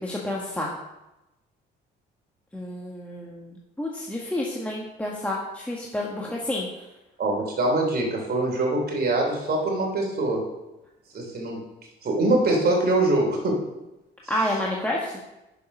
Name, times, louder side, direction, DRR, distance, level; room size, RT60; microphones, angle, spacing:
voice 1, 0.0-0.7 2.5-6.7 14.3-15.2, left 1 dB, 5° left, -3 dB, 1.5 m, -29 dB
voice 2, 7.2-10.4 11.1-11.6 12.0-13.6, right 2 dB, 50° right, 0 dB, 3.1 m, -23 dB
6.9 x 6.5 x 5.4 m, 0.98 s
supercardioid pair, 75°, 21 cm